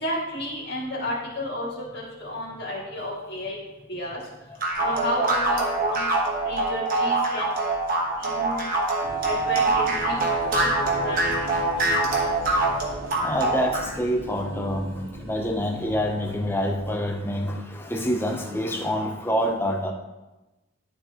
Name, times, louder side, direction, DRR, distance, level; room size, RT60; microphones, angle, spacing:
voice 1, 0.0-1.7 1.9-3.6 3.9-4.2 4.8-6.1 6.5-7.5 8.2-8.6 9.2-10.2 10.5-11.5 11.8-11.9, left 1 dB, 45° left, -5 dB, 2.1 m, -31 dB
sound 1, 4.6-13.9, right 2 dB, 40° right, 1.2 m, -24 dB
sound 2, 9.0-16.7, right 1 dB, 90° right, 1.4 m, -40 dB
voice 2, 13.2-19.9, equal, 10° left, 3 dB, 0.6 m, -27 dB
12.0 x 4.4 x 2.9 m, 1.1 s
head